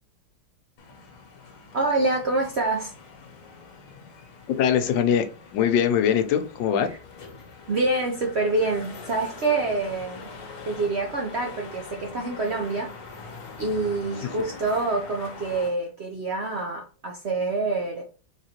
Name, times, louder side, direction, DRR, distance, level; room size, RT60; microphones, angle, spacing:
sound 1, 0.8-15.7, left 4 dB, 65° left, 1.4 m, -43 dB
voice 1, 1.7-2.9 6.9-7.0 7.7-10.3 10.7-13.0 13.6-18.0, right 3 dB, 60° right, 0.7 m, -26 dB
voice 2, 4.5-5.3 5.5-6.9 14.2-14.3, left 8 dB, 85° left, 1.3 m, -22 dB
3.8 x 3.6 x 2.8 m
omnidirectional pair, 1.9 m